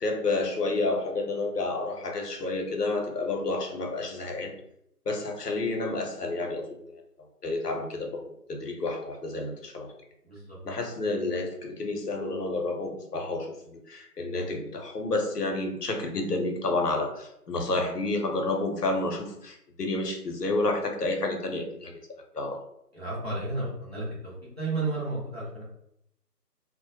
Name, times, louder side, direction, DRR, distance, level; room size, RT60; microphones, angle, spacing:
voice 1, 0.0-4.5 5.1-7.0 7.4-9.9 10.6-22.6, left 2 dB, 75° left, 2 dB, 0.7 m, -30 dB
voice 2, 10.2-10.6 22.9-25.6, right 2 dB, 40° right, -7 dB, 0.8 m, -32 dB
2.1 x 2.0 x 2.9 m, 0.77 s
figure-of-eight pair, 165°, 48 cm